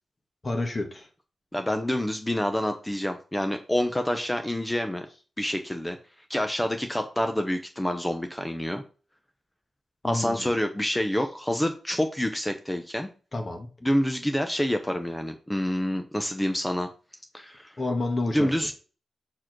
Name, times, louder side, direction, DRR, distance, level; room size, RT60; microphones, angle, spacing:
voice 1, 0.4-1.1 10.0-10.5 13.3-13.7 17.8-18.5, left 2 dB, 30° left, 3 dB, 1.4 m, -29 dB
voice 2, 1.5-5.1 5.4-6.0 6.3-8.8 10.0-13.1 13.8-16.9 17.3-17.7 18.3-18.7, left 1 dB, 5° left, 6 dB, 0.6 m, -27 dB
4.7 x 4.5 x 6.0 m, 0.36 s
wide cardioid pair, 150°, 0 cm